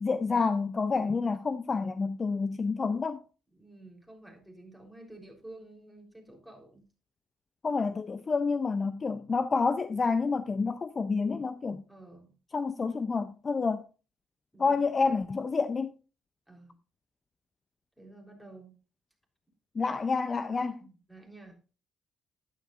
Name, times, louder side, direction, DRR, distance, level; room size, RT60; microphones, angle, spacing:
voice 1, 0.0-3.2 7.6-11.8 12.5-13.9 14.6-15.9 19.8-20.8, left 4 dB, 35° left, 0.5 m, -29 dB
voice 2, 3.5-6.8 11.9-12.3 14.5-14.8 16.5-16.8 18.0-18.7 20.8-21.6, right 2 dB, ahead, 3.6 m, -51 dB
12.0 x 10.0 x 2.5 m
cardioid pair, 90°, 0 cm